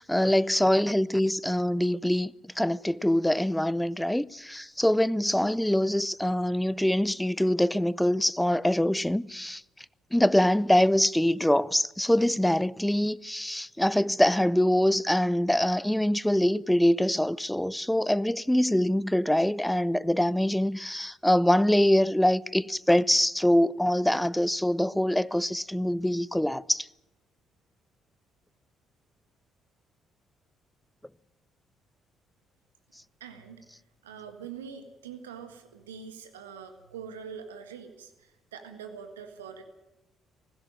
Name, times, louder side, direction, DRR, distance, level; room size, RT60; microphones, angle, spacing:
voice 1, 0.0-9.6 10.1-26.9, left 1 dB, 5° left, 0.7 m, -24 dB
voice 2, 33.2-39.6, right 7 dB, 85° right, 1.7 m, -44 dB
19.0 x 16.0 x 9.0 m
hypercardioid pair, 50°, 0 cm